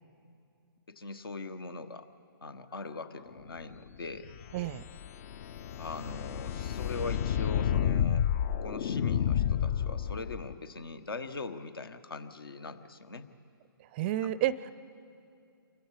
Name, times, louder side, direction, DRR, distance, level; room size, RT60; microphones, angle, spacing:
voice 1, 0.9-2.1 2.4-4.3 5.8-8.3 8.6-13.3, left 3 dB, 70° left, 10 dB, 1.4 m, -41 dB
sound 1, 4.2-10.5, left 9 dB, 40° left, 0.5 m, -30 dB
voice 2, 4.5-4.8 13.8-14.7, right 12 dB, 25° right, 17 dB, 0.5 m, -31 dB
28.5 x 23.5 x 5.0 m, 2.5 s
figure-of-eight pair, 135°, 12 cm